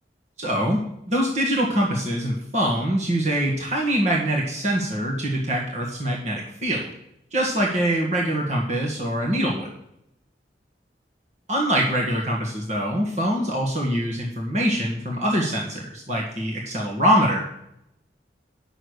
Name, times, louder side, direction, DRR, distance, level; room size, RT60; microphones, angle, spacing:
voice 1, 0.4-0.8 1.1-6.9 7.3-9.7 11.5-17.4, equal, 40° right, -2 dB, 1.8 m, -24 dB
10.5 x 6.4 x 6.7 m, 0.79 s
head